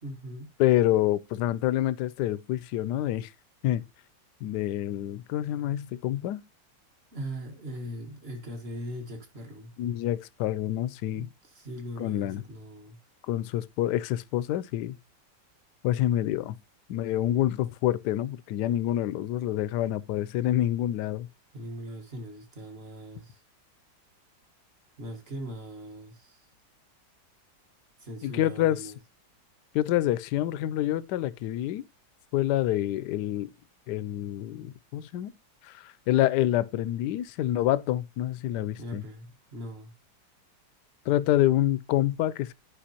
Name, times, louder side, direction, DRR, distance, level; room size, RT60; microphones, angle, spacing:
voice 1, 0.0-0.5 7.1-9.7 11.1-13.0 21.5-23.4 25.0-26.4 28.0-29.0 38.8-39.9, equal, 35° right, 1.8 m, -40 dB
voice 2, 0.6-3.3 3.6-3.8 4.4-6.4 9.8-11.3 12.0-12.4 13.3-15.0 15.8-16.6 16.9-21.3 28.2-28.8 29.7-31.8 32.3-33.5 33.9-35.3 35.6-39.0 41.1-42.5, left 13 dB, 75° left, 1.1 m, -27 dB
10.0 x 5.4 x 2.8 m
omnidirectional pair, 1.9 m